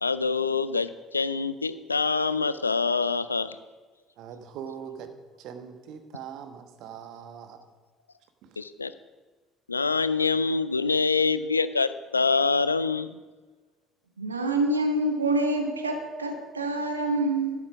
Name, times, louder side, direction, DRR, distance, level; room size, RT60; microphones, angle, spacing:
voice 1, 0.0-3.6 8.6-8.9 9.7-13.2, left 4 dB, 85° left, 15 dB, 0.3 m, -25 dB
voice 2, 4.2-5.1 5.4-7.6 8.4-8.6, right 8 dB, 55° right, 7 dB, 1.2 m, -41 dB
voice 3, 14.2-17.5, right 2 dB, 85° right, 5 dB, 1.1 m, -26 dB
11.5 x 8.3 x 6.0 m, 1.3 s
figure-of-eight pair, 55°, 0 cm